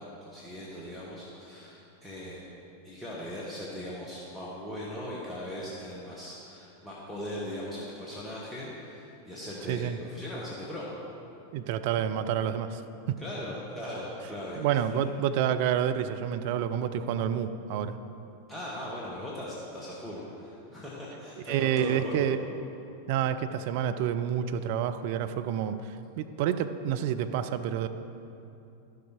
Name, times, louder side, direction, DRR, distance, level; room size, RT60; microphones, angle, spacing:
voice 1, 0.0-2.5 2.8-10.9 13.2-14.6 18.5-22.3, left 1 dB, 5° left, -7 dB, 1.4 m, -39 dB
voice 2, 9.7-10.0 11.5-12.8 13.1-13.2 14.6-18.0 21.5-22.4 23.1-27.9, right 9 dB, 50° right, 10 dB, 0.4 m, -28 dB
11.5 x 6.7 x 4.5 m, 2.8 s
figure-of-eight pair, 90°, 0 cm